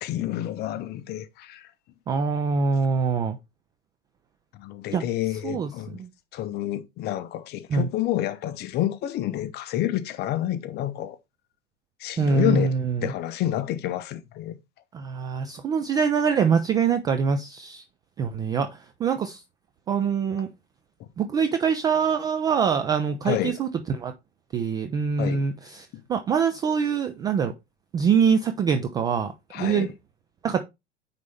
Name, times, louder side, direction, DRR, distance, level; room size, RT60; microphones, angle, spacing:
voice 1, 0.0-1.7 4.5-6.0 6.3-11.2 12.0-12.7 13.0-14.6 21.0-21.1 23.2-23.6 25.2-25.5 29.5-29.9, left 13 dB, 30° left, 0.8 m, -29 dB
voice 2, 2.1-3.4 4.9-5.0 5.4-6.1 7.7-7.9 12.2-13.1 14.9-17.8 18.2-19.4 19.9-20.5 21.2-24.1 24.5-27.5 27.9-29.9 30.4-30.7, right 6 dB, 10° right, 0.3 m, -24 dB
9.4 x 4.0 x 3.3 m
figure-of-eight pair, 95°, 35 cm